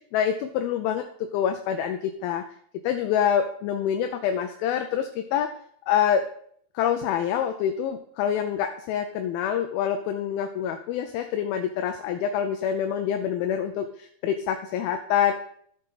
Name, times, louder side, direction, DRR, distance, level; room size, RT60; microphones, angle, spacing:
voice 1, 0.1-2.4 2.8-5.5 5.9-6.2 6.8-15.3, left 9 dB, 85° left, 6 dB, 2.4 m, -26 dB
12.5 x 6.7 x 4.0 m, 0.63 s
omnidirectional pair, 4.3 m